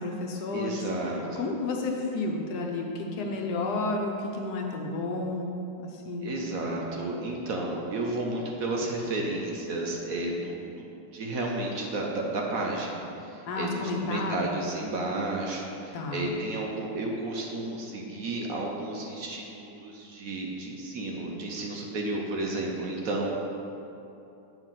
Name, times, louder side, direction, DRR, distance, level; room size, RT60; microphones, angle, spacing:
voice 1, 0.0-0.8 1.4-6.5 13.5-14.5 15.9-16.3, left 3 dB, 70° left, 1 dB, 1.3 m, -31 dB
voice 2, 0.5-1.5 3.2-3.7 6.2-23.3, right 2 dB, 60° right, -1 dB, 1.1 m, -32 dB
7.9 x 4.8 x 5.7 m, 2.8 s
omnidirectional pair, 1.9 m